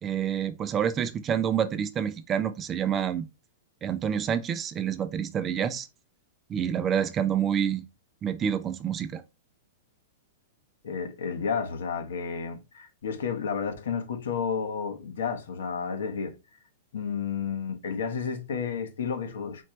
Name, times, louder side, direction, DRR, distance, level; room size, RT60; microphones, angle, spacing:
voice 1, 0.0-3.2 3.8-5.9 6.5-7.8 8.2-9.2, right 8 dB, 20° right, 0.4 m, -28 dB
voice 2, 10.8-16.3 16.9-19.6, left 6 dB, 80° left, 1.2 m, -31 dB
4.2 x 3.2 x 2.9 m
hypercardioid pair, 155°, 0 cm